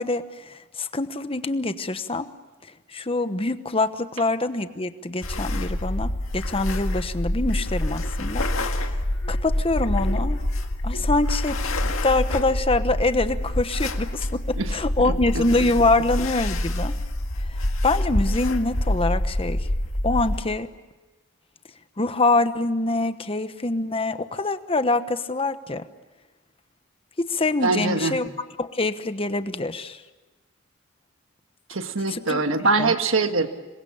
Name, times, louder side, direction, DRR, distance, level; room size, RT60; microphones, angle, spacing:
voice 1, 0.0-2.3 2.9-9.0 9.3-10.4 10.8-16.9 17.8-19.7 20.0-20.7 22.0-25.8 27.3-28.3 28.6-30.0 32.1-32.9, left 2 dB, 25° left, 11 dB, 1.1 m, -25 dB
sound 1, 5.2-20.4, left 1 dB, 80° left, 1.9 m, -26 dB
voice 2, 15.0-15.4 27.6-28.2 31.7-33.5, right 3 dB, 70° right, 7 dB, 1.6 m, -23 dB
27.0 x 22.5 x 8.7 m, 1.2 s
head